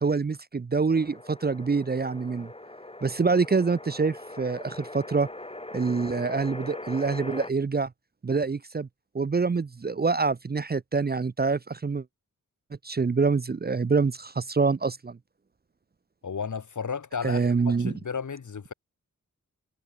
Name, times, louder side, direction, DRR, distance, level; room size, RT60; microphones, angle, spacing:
voice 1, 0.0-2.5 3.0-5.3 5.7-7.9 8.2-8.9 9.1-12.0 12.8-15.2 17.2-17.9, right 4 dB, 30° right, 0.6 m, -26 dB
sound 1, 0.9-7.5, left 2 dB, 20° left, 7.8 m, -41 dB
voice 2, 16.2-18.7, left 6 dB, 70° left, 2.8 m, -34 dB
wide cardioid pair, 115°, 31 cm